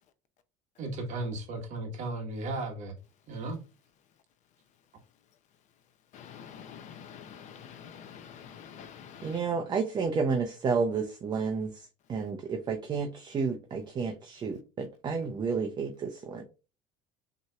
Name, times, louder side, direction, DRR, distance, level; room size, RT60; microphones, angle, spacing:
voice 1, 0.8-2.9 3.3-3.6, right 2 dB, 45° right, 1.3 m, -35 dB
voice 2, 6.1-9.4, left 8 dB, 45° left, 0.6 m, -47 dB
voice 3, 9.2-11.7 12.1-16.4, right 5 dB, 25° right, 0.6 m, -31 dB
6.1 x 2.9 x 2.3 m
cardioid pair, 155°, 17 cm